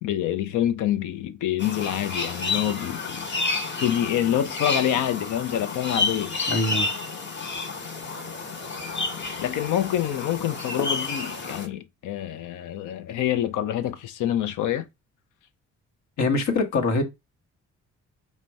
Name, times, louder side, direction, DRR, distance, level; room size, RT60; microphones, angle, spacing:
voice 1, 0.0-3.2 3.8-6.4 9.4-14.9, left 11 dB, 80° left, 0.6 m, -26 dB
sound 1, 1.6-11.7, left 3 dB, 40° left, 1.1 m, -30 dB
voice 2, 6.5-6.9 16.2-17.0, left 3 dB, 65° left, 1.1 m, -23 dB
3.9 x 2.2 x 4.5 m
cardioid pair, 90°, 30 cm